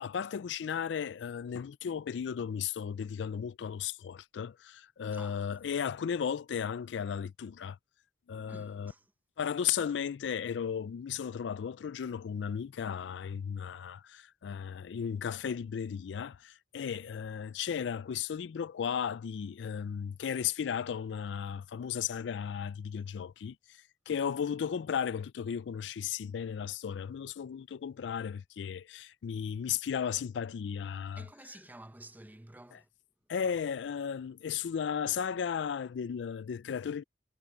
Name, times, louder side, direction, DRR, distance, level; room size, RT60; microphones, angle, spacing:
voice 1, 0.0-7.8 8.3-8.9 9.4-31.3 32.7-32.8 33.3-37.0, left 7 dB, 90° left, 0.4 m, -35 dB
voice 2, 5.1-5.5 8.5-9.1 31.2-32.9, right 1 dB, 10° right, 0.7 m, -51 dB
head